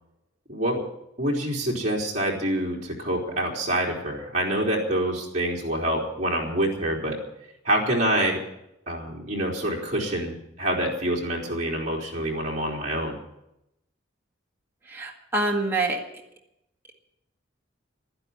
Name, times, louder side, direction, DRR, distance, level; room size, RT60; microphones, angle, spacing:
voice 1, 0.5-0.8 1.2-7.2 7.6-8.4 8.9-13.2, right 1 dB, 35° right, -3 dB, 3.9 m, -26 dB
voice 2, 14.9-16.0, right 2 dB, 10° right, -2 dB, 1.9 m, -26 dB
12.0 x 10.5 x 9.6 m, 0.83 s
head